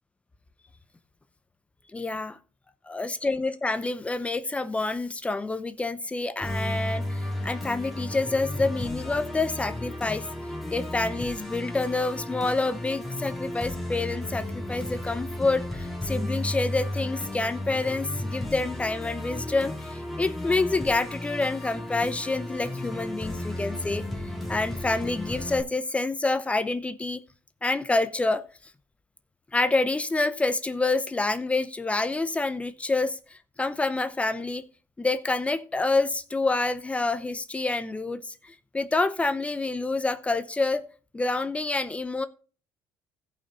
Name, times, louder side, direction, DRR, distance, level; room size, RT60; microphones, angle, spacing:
voice 1, 1.9-2.4 2.9-10.3 10.7-24.0 24.5-27.2 27.6-28.4 29.5-34.6 35.0-40.8 41.1-42.3, left 3 dB, 15° left, 0.7 m, -27 dB
Musical instrument, 6.4-25.6, left 1 dB, ahead, 2.6 m, -34 dB
15.5 x 5.4 x 4.1 m
cardioid pair, 95°, 7 cm